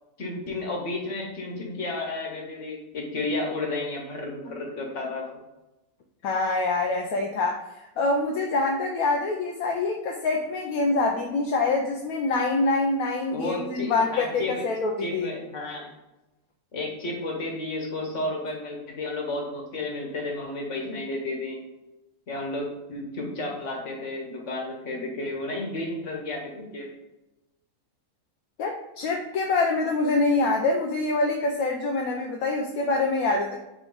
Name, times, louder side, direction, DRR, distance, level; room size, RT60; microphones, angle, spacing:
voice 1, 0.2-5.4 13.3-14.6 15.0-15.9 16.7-21.6 22.3-26.9, left 2 dB, 55° left, 0 dB, 1.6 m, -32 dB
voice 2, 6.2-7.6 8.0-15.3 28.6-33.6, left 3 dB, 75° left, 1 dB, 1.1 m, -25 dB
8.2 x 3.1 x 3.9 m, 1.0 s
omnidirectional pair, 1.6 m